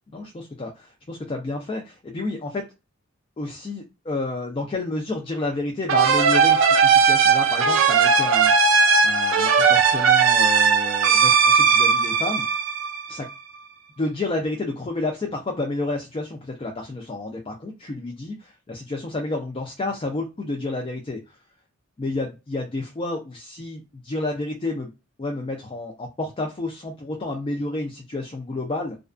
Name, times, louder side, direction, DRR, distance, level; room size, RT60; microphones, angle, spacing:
voice 1, 0.1-2.6 3.4-8.7 9.0-12.4 13.1-13.3 14.0-21.4 22.0-24.9 25.2-29.0, left 2 dB, 25° left, 2 dB, 0.4 m, -30 dB
sound 1, 5.9-13.3, right 5 dB, 70° right, 0.4 m, -18 dB
2.3 x 2.2 x 2.4 m, 0.27 s
head